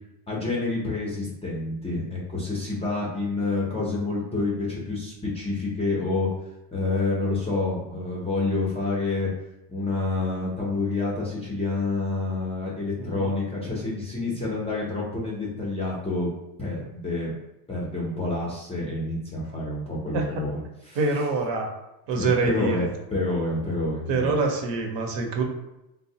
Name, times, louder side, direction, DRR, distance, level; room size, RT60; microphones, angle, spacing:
voice 1, 0.3-6.3 6.7-9.3 9.7-16.3 16.6-17.3 17.7-21.0 22.1-24.3, left 2 dB, 15° left, -5 dB, 0.4 m, -28 dB
voice 2, 13.0-13.3 20.1-20.4 21.0-21.7 22.1-22.9 24.1-25.4, right 3 dB, 60° right, 2 dB, 0.7 m, -25 dB
3.2 x 2.0 x 2.7 m, 0.91 s
cardioid pair, 130°, 49 cm